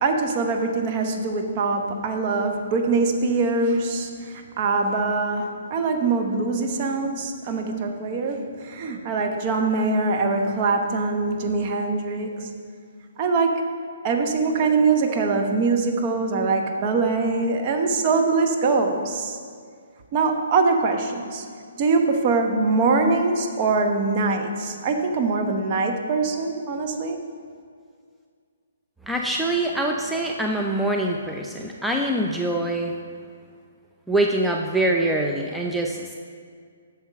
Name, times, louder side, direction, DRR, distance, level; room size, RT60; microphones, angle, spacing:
voice 1, 0.0-12.5 13.2-13.7 14.0-19.4 20.1-21.4 21.8-27.2, right 3 dB, 35° right, 3 dB, 0.9 m, -23 dB
voice 2, 29.1-33.0 34.1-36.2, right 1 dB, ahead, 0 dB, 0.5 m, -24 dB
8.2 x 6.7 x 5.3 m, 2.1 s
figure-of-eight pair, 130°, 0 cm